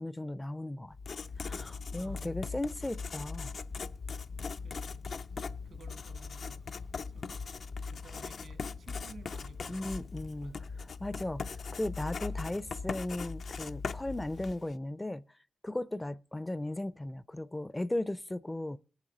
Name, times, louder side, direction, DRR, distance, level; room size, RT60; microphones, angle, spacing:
voice 1, 0.0-3.5 9.7-15.2 15.6-18.8, left 1 dB, 15° left, 0.4 m, -37 dB
Writing, 0.9-14.7, left 5 dB, 70° left, 0.5 m, -40 dB
voice 2, 1.9-2.4 4.6-5.0 5.6-6.6 7.1-7.4 7.8-10.1 10.4-10.6, right 2 dB, 85° right, 1.6 m, -54 dB
18.0 x 7.3 x 3.8 m
cardioid pair, 80°, 0 cm